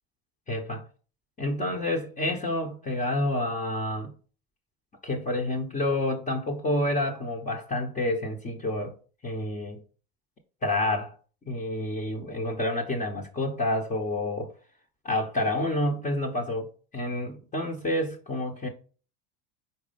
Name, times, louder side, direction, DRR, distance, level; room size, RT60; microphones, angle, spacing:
voice 1, 0.5-0.9 1.4-4.1 5.0-8.9 9.2-9.8 10.6-11.1 11.5-14.5 15.0-18.7, left 1 dB, 25° left, 1.2 m, -29 dB
4.6 x 4.3 x 5.3 m
supercardioid pair, 110°, 33 cm